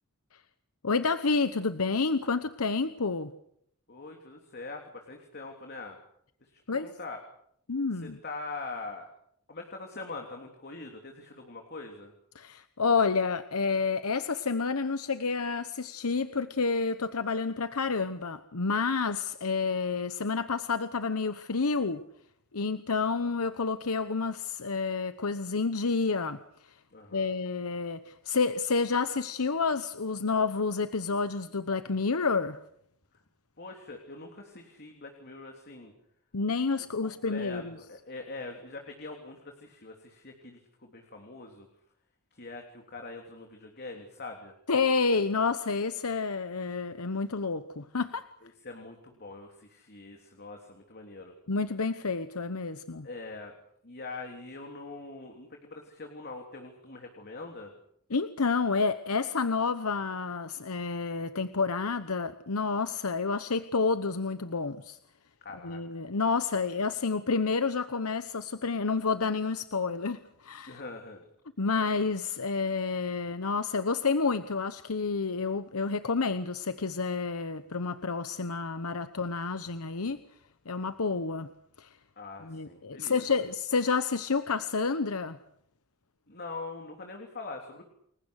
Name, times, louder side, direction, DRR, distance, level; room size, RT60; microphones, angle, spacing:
voice 1, 0.8-3.3 6.7-6.9 7.7-8.2 12.3-22.0 22.5-26.8 27.1-32.6 36.3-37.8 44.7-48.3 51.5-53.1 58.1-65.0 65.6-70.8 71.6-80.2 80.7-81.5 81.8-81.9 82.4-85.4, left 4 dB, 75° left, 11 dB, 1.0 m, -29 dB
voice 2, 3.9-6.0 6.4-7.2 7.9-9.1 9.5-12.1 26.9-27.3 33.6-35.9 37.0-41.7 42.3-44.5 48.4-51.3 53.0-53.5 53.8-57.7 65.4-66.1 70.7-71.2 82.2-83.4 86.3-87.8, left 3 dB, 50° left, 3 dB, 3.3 m, -43 dB
30.0 x 22.0 x 6.5 m, 0.70 s
head